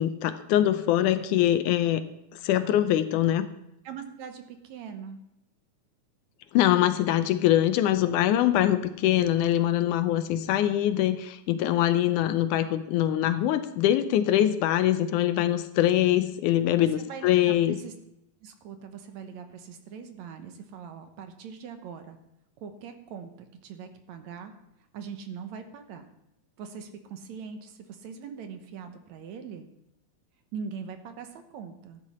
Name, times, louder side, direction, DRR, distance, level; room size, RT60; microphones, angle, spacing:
voice 1, 0.0-2.0 2.4-3.5 6.5-17.8, left 12 dB, 85° left, 11 dB, 2.2 m, -23 dB
voice 2, 3.8-5.2 17.0-17.9 18.4-22.2 22.6-24.5 24.9-26.0 26.6-29.7 30.5-32.0, right 6 dB, 70° right, 7 dB, 2.1 m, -41 dB
14.0 x 9.8 x 4.2 m, 0.84 s
omnidirectional pair, 3.6 m